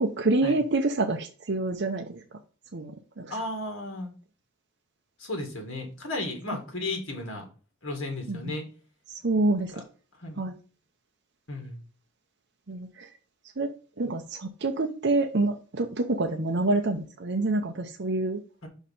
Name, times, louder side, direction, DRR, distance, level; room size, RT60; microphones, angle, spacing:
voice 1, 0.0-2.2 2.7-3.4 8.3-8.5 9.2-9.7 10.4-10.6 12.7-13.1 13.6-13.7 14.0-18.4, right 2 dB, 50° right, 2 dB, 0.7 m, -27 dB
voice 2, 3.3-4.1 5.2-7.4 7.8-8.6 9.7-9.8 10.2-10.5 11.5-11.8 18.6-18.7, left 2 dB, 60° left, 2 dB, 2.3 m, -34 dB
5.5 x 4.7 x 5.5 m, 0.38 s
head